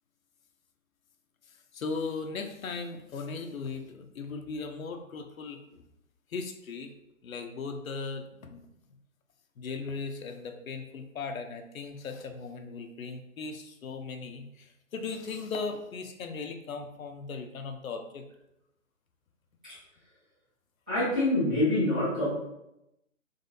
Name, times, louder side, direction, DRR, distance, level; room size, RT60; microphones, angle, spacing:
voice 1, 1.5-5.8 6.3-6.9 7.2-8.7 9.6-18.3, left 4 dB, 75° left, 5 dB, 0.7 m, -38 dB
voice 2, 20.9-22.3, left 1 dB, 10° right, -15 dB, 0.4 m, -26 dB
4.0 x 3.0 x 2.7 m, 0.87 s
hypercardioid pair, 145°, 41 cm